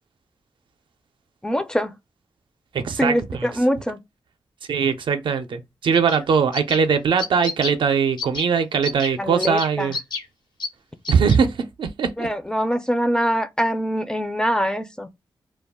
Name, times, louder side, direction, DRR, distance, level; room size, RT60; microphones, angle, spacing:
voice 1, 1.4-1.9 3.0-4.0 9.2-9.9 12.2-15.1, equal, 10° left, 0.4 m, -23 dB
voice 2, 2.7-3.5 4.7-10.0 11.1-12.3, right 6 dB, 75° right, 0.4 m, -21 dB
sound 1, 5.9-6.2 6.5-6.8 7.2-7.8 8.2-8.5 8.8-9.1 9.4-10.2 10.6-10.7 11.0-11.3, left 4 dB, 60° left, 0.7 m, -29 dB
2.3 x 2.2 x 3.4 m
wide cardioid pair, 100°, 8 cm